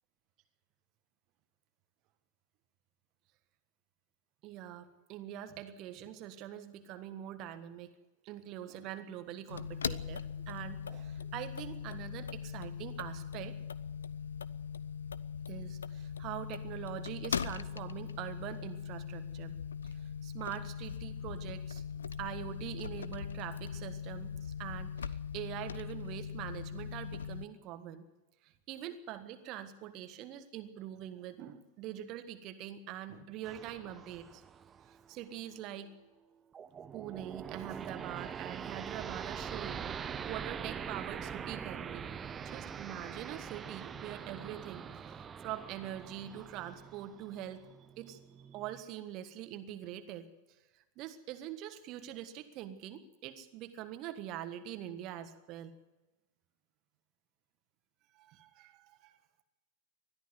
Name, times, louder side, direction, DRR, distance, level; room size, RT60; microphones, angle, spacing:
voice 1, 4.4-7.9 8.2-13.6 15.5-19.5 19.8-21.8 22.2-24.3 24.6-28.0 28.4-34.4 34.9-35.9 36.9-42.0 42.4-47.7 48.0-48.2 48.5-50.3 50.7-55.7 58.1-59.2, right 11 dB, 40° right, 9 dB, 1.5 m, -44 dB
sound 1, 9.5-27.5, left 7 dB, 70° left, 0.7 m, -40 dB
sound 2, 33.4-35.4 36.5-48.8, right 7 dB, 20° right, 0.9 m, -43 dB
21.0 x 13.5 x 9.6 m, 1.1 s
figure-of-eight pair, 90°, 0 cm